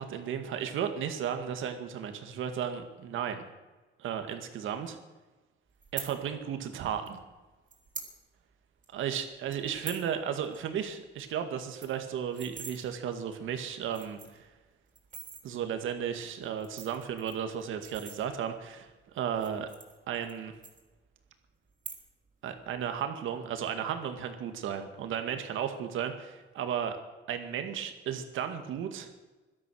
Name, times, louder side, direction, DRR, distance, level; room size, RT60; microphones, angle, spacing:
voice 1, 0.0-3.4 4.0-5.0 5.9-7.2 8.9-14.5 15.4-18.9 19.1-19.7 20.1-20.5 22.4-27.0 27.3-29.1, right 8 dB, 80° right, 7 dB, 2.1 m, -34 dB
sound 1, 5.8-6.1 7.1-7.2 7.7-8.1 8.5-8.6 8.8-9.0 9.5-10.1 10.4-10.6 10.9-11.0 11.3-11.4 11.6-12.8 13.4-13.5 13.8-14.4 14.9-15.4 16.4-18.6 19.3-20.4 20.6-21.3 21.7-22.3 22.6-23.0, right 5 dB, 40° right, 3.7 m, -44 dB
17.0 x 12.5 x 6.4 m, 1.2 s
cardioid pair, 90°, 20 cm